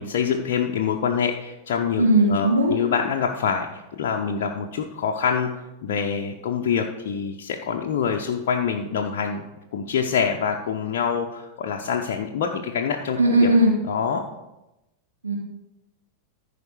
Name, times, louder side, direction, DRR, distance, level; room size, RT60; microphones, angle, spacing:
voice 1, 0.0-5.5 5.8-9.4 9.7-13.5 13.9-14.2, left 7 dB, 55° left, 0 dB, 0.8 m, -25 dB
voice 2, 2.0-2.8 13.2-13.7 15.2-15.4, right 1 dB, 75° right, 0 dB, 1.5 m, -18 dB
14.0 x 5.0 x 4.8 m, 0.95 s
figure-of-eight pair, 90°, 0 cm